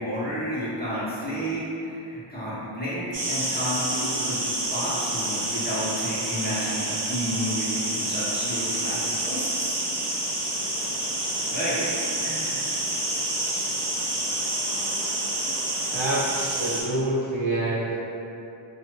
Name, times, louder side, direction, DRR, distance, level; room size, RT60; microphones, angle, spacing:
voice 1, 0.0-4.4 4.7-9.7 11.5-11.8 12.2-12.7, equal, 20° left, -10 dB, 1.0 m, -31 dB
sound 1, 3.1-16.8, right 1 dB, 40° right, 0.7 m, -28 dB
voice 2, 15.9-18.0, right 1 dB, 75° right, -7 dB, 0.8 m, -27 dB
2.7 x 2.4 x 3.1 m, 2.7 s
wide cardioid pair, 40°, 48 cm